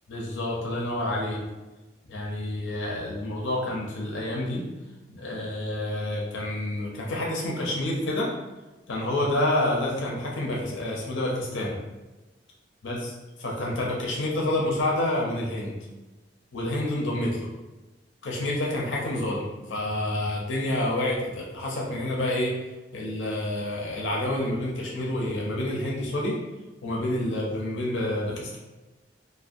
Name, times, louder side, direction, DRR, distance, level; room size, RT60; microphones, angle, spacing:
voice 1, 0.1-1.4 2.1-4.6 5.1-8.3 8.9-11.8 12.8-13.1 13.4-15.7 16.5-17.5 18.2-22.5 22.9-26.4 26.8-28.6, left 1 dB, 85° left, -3 dB, 0.5 m, -28 dB
2.5 x 2.1 x 2.4 m, 1.1 s
head